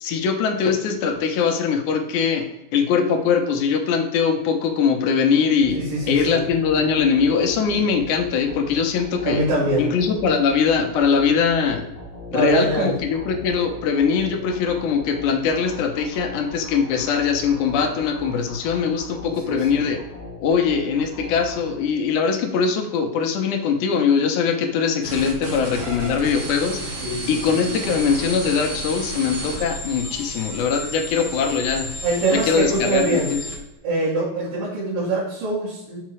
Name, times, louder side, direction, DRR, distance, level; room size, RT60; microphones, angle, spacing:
voice 1, 0.0-2.5 2.7-5.8 6.1-9.4 9.8-11.8 12.3-20.0 20.4-26.8 27.3-31.9 32.3-33.4, left 6 dB, 75° left, 4 dB, 2.0 m, -21 dB
sound 1, 5.6-22.2, left 2 dB, 30° left, 1.1 m, -39 dB
voice 2, 5.7-6.4 9.2-9.9 12.3-12.9 19.5-19.8 27.0-27.6 32.0-33.3 33.8-36.0, right 2 dB, 85° right, -10 dB, 3.5 m, -23 dB
sound 2, 25.0-33.6, equal, 50° right, 2.6 m, -32 dB
6.7 x 4.5 x 3.1 m, 0.93 s
omnidirectional pair, 3.9 m